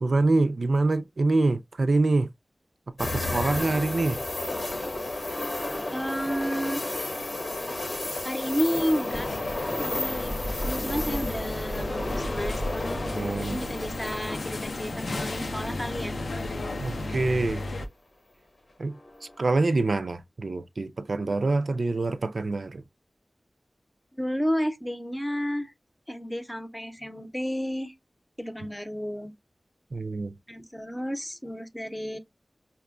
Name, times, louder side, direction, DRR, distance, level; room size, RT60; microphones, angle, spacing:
voice 1, 0.0-2.3 3.0-4.2 13.1-13.6 16.8-17.6 18.8-18.9 19.4-22.8 29.9-30.3, right 3 dB, 75° right, 0.3 m, -25 dB
sound 1, 3.0-16.0 16.4-16.5 18.9-19.4, left 2 dB, 65° left, 0.9 m, -32 dB
voice 2, 5.9-6.8 8.2-9.3 9.8-10.3 10.6-16.1 24.1-25.7 26.1-27.9 28.4-29.3 30.5-32.2, equal, 10° left, 0.6 m, -31 dB
sound 2, 9.1-17.9, left 2 dB, 85° left, 0.5 m, -34 dB
5.7 x 2.2 x 2.3 m
wide cardioid pair, 70°, 0 cm